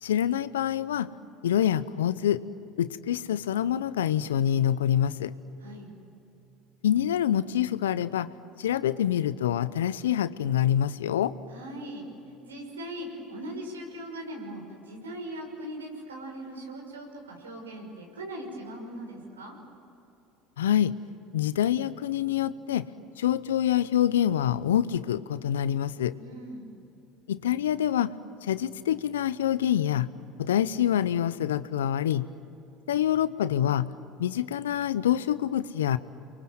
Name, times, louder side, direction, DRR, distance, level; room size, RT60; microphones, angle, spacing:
voice 1, 0.0-1.1 1.4-2.4 2.8-5.3 6.8-8.3 8.6-11.3 20.6-21.0 21.3-22.9 23.2-26.1 27.3-28.1 28.4-30.1 30.4-32.3 32.9-33.9 34.2-36.0, left 10 dB, 80° left, 16 dB, 0.8 m, -26 dB
voice 2, 11.5-12.1 12.4-19.5 26.2-26.7, right 1 dB, 90° right, 1 dB, 5.9 m, -40 dB
29.5 x 24.0 x 7.9 m, 2.8 s
hypercardioid pair, 70°, 0 cm